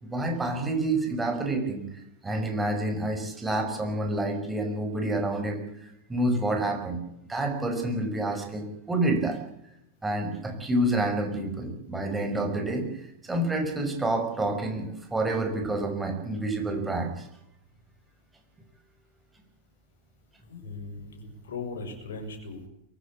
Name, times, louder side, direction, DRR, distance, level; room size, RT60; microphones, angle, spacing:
voice 1, 0.0-7.0 7.3-9.4 10.0-17.3, right 1 dB, 10° right, 5 dB, 6.1 m, -28 dB
voice 2, 20.5-22.7, left 3 dB, 60° left, 5 dB, 6.8 m, -38 dB
23.5 x 15.0 x 8.6 m, 0.81 s
figure-of-eight pair, 90°, 0 cm